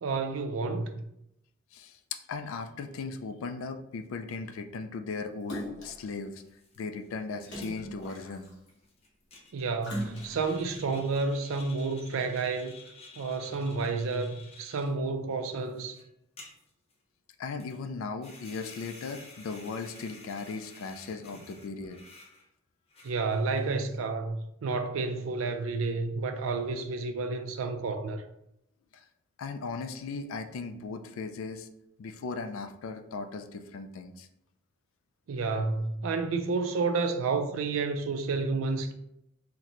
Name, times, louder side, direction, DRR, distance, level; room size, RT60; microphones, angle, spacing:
voice 1, 0.0-1.0 9.5-12.7 13.2-16.0 23.0-28.3 35.3-38.9, right 4 dB, 90° right, 0.4 m, -30 dB
voice 2, 1.7-6.4 6.8-8.5 17.4-22.0 28.9-29.0 29.4-31.7 32.0-34.3, left 4 dB, 90° left, 0.4 m, -37 dB
Splash splatter, 5.5-6.1 7.4-8.7 9.8-10.6 11.2-11.3, equal, 65° left, 0.9 m, -40 dB
sound 1, 6.0-6.1 6.4-14.9 15.4-16.1 16.4-16.9 17.6-17.8 18.2-22.4 22.9-23.7, left 3 dB, 30° left, 0.6 m, -52 dB
3.9 x 2.1 x 2.9 m
head